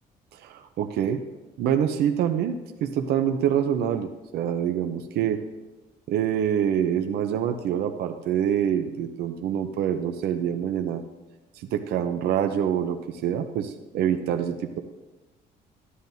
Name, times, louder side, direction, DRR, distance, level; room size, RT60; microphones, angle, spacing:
voice 1, 0.3-1.2 1.6-5.4 6.1-11.0 11.5-14.8, right 9 dB, 70° right, 6 dB, 0.7 m, -26 dB
13.5 x 11.0 x 2.7 m, 1.1 s
cardioid pair, 110°, 17 cm